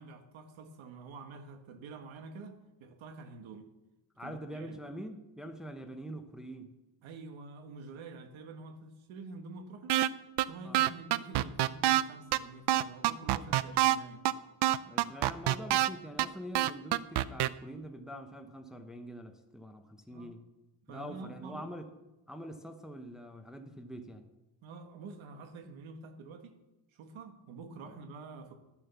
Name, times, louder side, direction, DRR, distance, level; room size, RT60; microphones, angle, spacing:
voice 1, 0.0-3.7 4.2-4.8 7.0-10.0 10.5-14.3 20.1-20.3 20.9-21.7 24.6-26.6 26.9-28.6, right 4 dB, 85° right, 7 dB, 1.6 m, -47 dB
voice 2, 4.2-6.7 10.6-10.9 14.9-20.5 20.9-21.9 22.3-24.3, equal, ahead, 5 dB, 0.9 m, -44 dB
sound 1, 9.9-10.1 10.4-10.5 10.7-12.0 12.3-12.4 12.7-14.0 14.3-14.4 14.6-15.9 16.2-16.3 16.5-17.5, right 15 dB, 60° right, 0.6 m, -26 dB
12.0 x 7.4 x 6.9 m, 0.99 s
cardioid pair, 130°, 46 cm